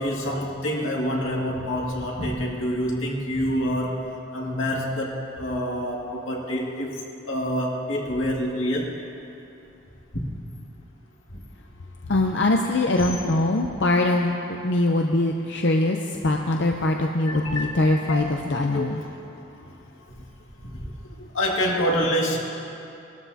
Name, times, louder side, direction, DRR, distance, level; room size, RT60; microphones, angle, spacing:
voice 1, 0.0-4.0 4.3-7.0 7.3-8.9 17.2-17.7 18.1-18.4 18.7-19.0 20.6-20.9 21.3-22.4, equal, 90° left, -2 dB, 2.1 m, -26 dB
voice 2, 12.1-14.3 14.6-16.0 16.2-19.0, left 2 dB, 65° left, 2 dB, 0.6 m, -22 dB
20.5 x 13.0 x 2.8 m, 2.8 s
head